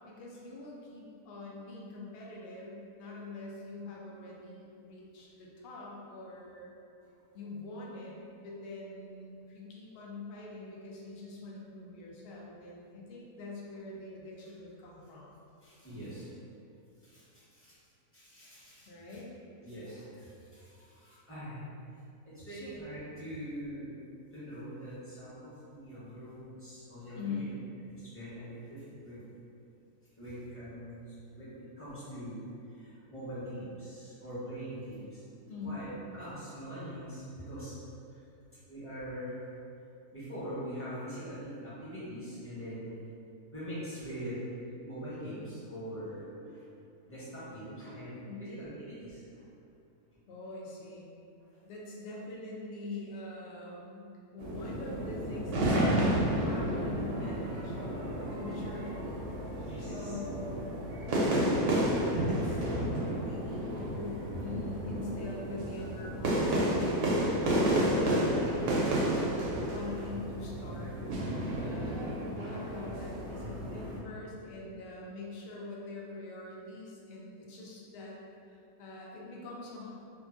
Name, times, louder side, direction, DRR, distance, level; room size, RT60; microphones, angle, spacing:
voice 1, 0.0-6.7 7.3-15.4 18.9-19.3 22.5-22.7 27.1-27.4 35.5-35.8 48.3-48.5 50.3-51.1 51.6-56.1 56.3-59.2 59.8-60.6 61.3-69.4 69.7-71.0 71.6-78.2 78.5-80.0, left 2 dB, 75° left, -3 dB, 0.5 m, -44 dB
voice 2, 15.6-16.3 17.0-17.7 18.1-19.2 19.6-21.6 22.2-24.0 24.3-27.5 27.8-29.2 30.2-35.2 35.6-37.7 38.1-38.2 38.7-39.4 40.1-43.0 43.5-44.4 44.8-46.7 47.1-49.4 51.5-51.6 59.6-60.2, equal, 10° left, -12 dB, 0.6 m, -43 dB
sound 1, 54.4-74.0, right 1 dB, 90° right, 1.1 m, -31 dB
2.8 x 2.4 x 2.5 m, 2.6 s
omnidirectional pair, 1.6 m